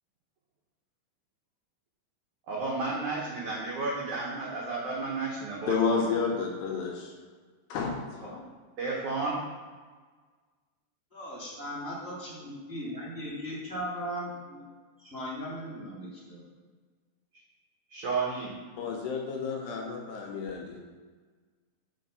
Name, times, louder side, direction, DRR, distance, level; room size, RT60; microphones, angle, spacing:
voice 1, 2.5-6.0 8.2-8.3 8.8-9.5 17.9-18.6, right 3 dB, 90° right, -4 dB, 1.6 m, -32 dB
voice 2, 5.7-7.1 7.7-8.5 18.8-20.8, left 5 dB, 75° left, 0 dB, 2.7 m, -31 dB
voice 3, 11.1-14.6 15.0-16.4, equal, 5° right, -9 dB, 1.5 m, -38 dB
7.4 x 5.1 x 6.9 m, 1.5 s
omnidirectional pair, 5.4 m